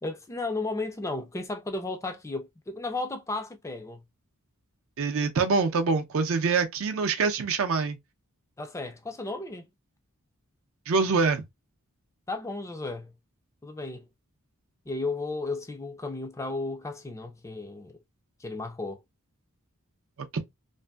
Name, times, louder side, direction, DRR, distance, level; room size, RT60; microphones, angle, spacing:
voice 1, 0.0-4.0 8.6-9.7 12.3-13.1 13.6-14.1 14.9-18.0 18.4-19.0, left 2 dB, 15° left, 0.3 m, -34 dB
voice 2, 5.0-8.0 10.9-11.4 20.3-20.4, right 4 dB, 65° right, 0.5 m, -25 dB
2.5 x 2.5 x 2.2 m
head